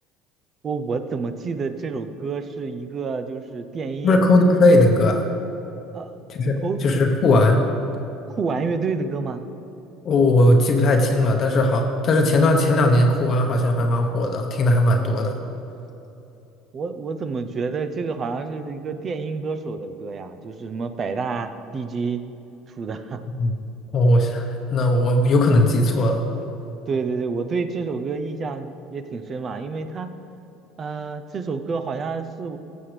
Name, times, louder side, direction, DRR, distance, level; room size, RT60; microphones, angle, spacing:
voice 1, 0.6-4.2 5.9-6.1 6.6-6.8 8.4-9.4 16.7-22.3 22.7-23.2 26.9-30.1 30.8-32.6, right 4 dB, 40° right, 10 dB, 0.6 m, -28 dB
voice 2, 4.0-5.3 6.3-7.7 10.0-15.3 23.4-23.5 23.9-26.2, left 1 dB, 45° left, 3 dB, 0.9 m, -18 dB
15.5 x 7.3 x 3.3 m, 2.9 s
supercardioid pair, 90°, 0 cm